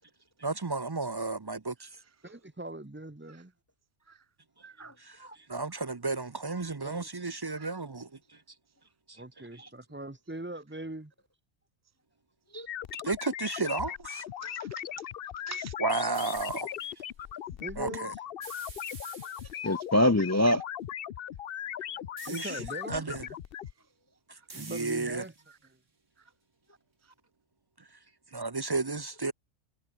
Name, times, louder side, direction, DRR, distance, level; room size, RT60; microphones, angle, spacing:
voice 1, 0.4-1.9 5.0-5.2 5.5-8.1 13.0-14.2 15.8-16.7 17.8-18.1 22.2-22.6 22.9-23.3 24.5-25.2 28.3-29.3, right 3 dB, 25° right, 0.5 m, -32 dB
voice 2, 2.2-3.5 6.8-7.1 9.1-11.1 17.6-18.2 19.2-19.3 22.2-23.2 24.5-25.3, right 1 dB, 10° right, 0.9 m, -41 dB
sound 1, 12.7-23.7, left 10 dB, 60° left, 0.8 m, -39 dB
sound 2, 16.1-16.9 18.4-19.8 22.2-23.0 24.5-25.5, right 3 dB, 85° right, 3.3 m, -49 dB
voice 3, 19.6-20.6, left 1 dB, 25° left, 0.3 m, -26 dB
omnidirectional pair, 1.3 m